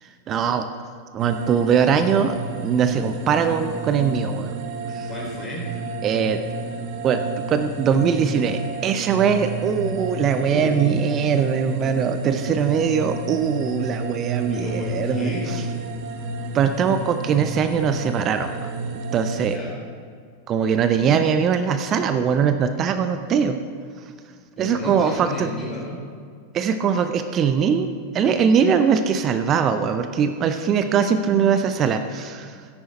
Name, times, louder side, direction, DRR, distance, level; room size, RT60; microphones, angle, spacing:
voice 1, 0.3-0.7 1.1-4.6 4.9-5.1 6.0-6.4 7.0-7.2 7.5-15.6 16.5-18.7 19.1-19.6 20.5-23.6 24.6-25.5 26.5-32.6, right 7 dB, 30° right, 9 dB, 0.6 m, -21 dB
sound 1, 1.2-19.6, right 2 dB, 45° right, 0.9 m, -31 dB
voice 2, 5.0-5.7 10.5-11.0 14.5-15.5 19.4-19.8 24.6-26.0, left 2 dB, 15° left, -4 dB, 3.8 m, -32 dB
13.0 x 10.0 x 4.4 m, 2.1 s
figure-of-eight pair, 90°, 0 cm